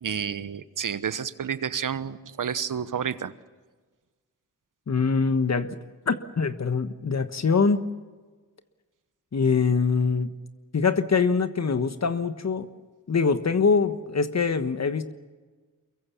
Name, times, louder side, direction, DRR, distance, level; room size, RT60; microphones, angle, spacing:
voice 1, 0.0-3.3, right 7 dB, 65° right, 14 dB, 1.2 m, -30 dB
voice 2, 4.9-5.7 6.1-7.8 9.3-10.3 10.7-12.7 13.1-15.1, left 5 dB, 50° left, 10 dB, 1.4 m, -23 dB
24.0 x 22.5 x 7.2 m, 1.4 s
cardioid pair, 55°, 34 cm